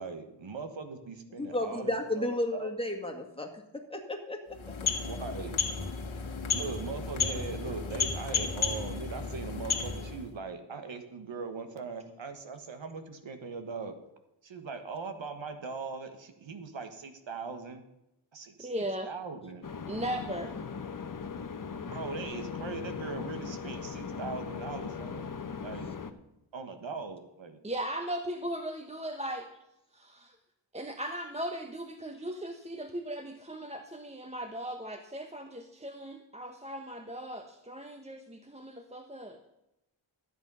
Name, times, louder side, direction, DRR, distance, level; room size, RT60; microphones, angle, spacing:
voice 1, 0.0-2.7 5.1-5.6 6.5-13.9 14.4-17.8 18.3-19.6 21.9-25.3 25.6-25.9 26.5-27.6, right 4 dB, 70° right, 7 dB, 1.5 m, -40 dB
voice 2, 1.4-4.7, left 1 dB, 10° left, 2 dB, 1.9 m, -33 dB
sound 1, 4.5-10.3, left 5 dB, 80° left, 1.7 m, -33 dB
voice 3, 18.6-19.1 19.9-20.5 27.6-29.5 29.9-30.4 30.7-39.4, right 1 dB, 15° right, 5 dB, 0.9 m, -38 dB
sound 2, 19.6-26.1, left 6 dB, 40° left, 1.0 m, -39 dB
13.0 x 8.2 x 5.5 m, 0.87 s
wide cardioid pair, 80°, 47 cm